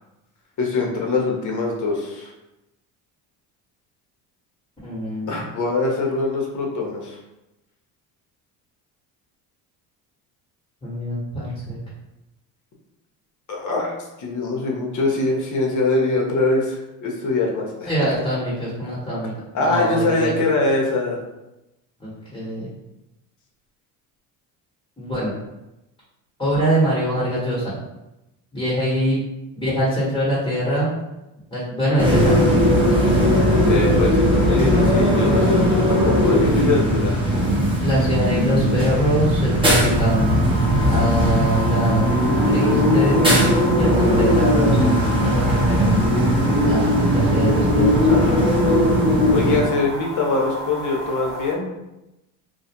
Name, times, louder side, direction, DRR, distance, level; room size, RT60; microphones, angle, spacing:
voice 1, 0.6-2.3 5.3-7.2 13.5-13.9 14.2-18.2 19.5-21.2 33.6-37.2 48.1-48.4 49.3-51.7, left 3 dB, 40° left, 0 dB, 0.8 m, -23 dB
voice 2, 4.8-5.4 10.8-11.8 17.8-19.3 19.6-20.3 22.0-22.7 25.0-25.3 26.4-27.7 28.5-29.2 29.6-30.9 31.5-32.5 37.8-40.4 40.9-42.0 42.5-43.2 43.8-45.9 46.6-48.1, equal, 10° left, -8 dB, 1.1 m, -23 dB
sound 1, 32.0-49.6, equal, 10° right, 0.9 m, -18 dB
sound 2, 39.9-51.5, right 1 dB, 85° right, 0.9 m, -32 dB
2.3 x 2.2 x 2.8 m, 0.94 s
supercardioid pair, 75°, 45 cm